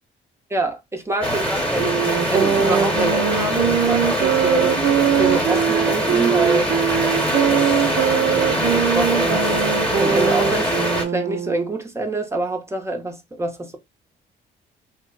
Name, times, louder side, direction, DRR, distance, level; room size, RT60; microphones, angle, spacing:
voice 1, 0.5-1.9 2.3-4.9 5.2-6.7 7.5-7.8 8.3-9.6 10.0-10.7 11.1-13.8, right 2 dB, 15° right, 0.7 m, -25 dB
sound 1, 1.2-11.0, equal, 5° left, 1.1 m, -23 dB
sound 2, 1.7-11.8, right 9 dB, 65° right, 0.5 m, -22 dB
2.9 x 2.1 x 3.6 m
cardioid pair, 90°, 20 cm